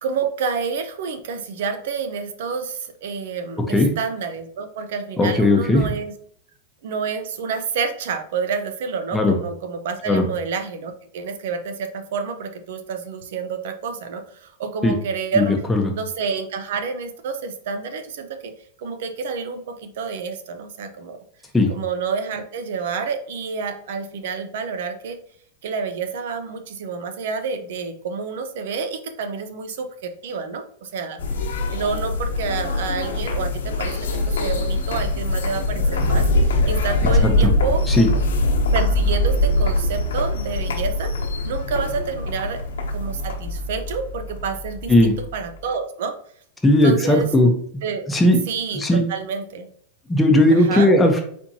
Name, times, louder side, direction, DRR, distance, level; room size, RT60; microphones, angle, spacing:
voice 1, 0.0-6.1 6.8-15.6 15.9-18.5 18.8-21.2 21.7-25.2 25.6-31.2 31.7-38.2 38.7-41.1 41.4-42.6 42.9-46.1 46.8-47.3 47.8-48.1 48.5-49.7 50.5-50.9, right 5 dB, 70° right, 8 dB, 0.7 m, -29 dB
voice 2, 5.2-5.9 9.1-9.4 10.1-10.2 14.8-14.9 15.3-15.9 21.5-21.7 37.2-37.5 37.9-38.1 44.9-45.1 46.6-47.5 48.1-48.4 48.7-49.0 50.1-51.2, left 1 dB, 10° left, 2 dB, 0.9 m, -17 dB
sound 1, 31.2-45.6, left 2 dB, 90° left, 1.0 m, -23 dB
4.3 x 4.3 x 2.8 m, 0.63 s
supercardioid pair, 130°, 0 cm